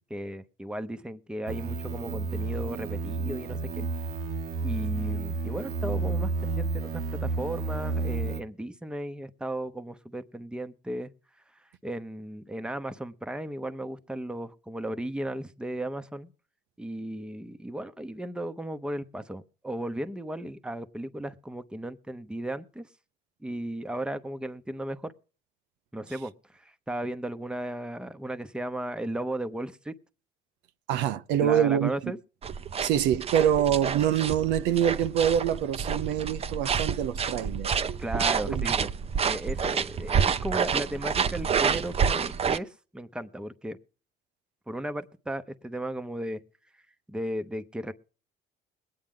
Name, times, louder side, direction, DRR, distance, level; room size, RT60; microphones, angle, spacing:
voice 1, 0.1-3.9 4.6-11.1 11.8-16.3 16.8-22.9 23.4-25.1 25.9-29.9 31.4-32.2 38.0-38.9 39.2-43.8 44.7-46.4 47.1-47.9, right 1 dB, 5° right, 0.9 m, -35 dB
sound 1, 1.5-8.4, right 3 dB, 70° right, 1.1 m, -31 dB
voice 2, 30.9-32.1 32.8-37.7 38.5-38.7, right 10 dB, 90° right, 0.7 m, -25 dB
sound 2, 32.4-42.6, right 6 dB, 35° right, 0.7 m, -28 dB
21.5 x 8.9 x 3.7 m
cardioid pair, 110°, 17 cm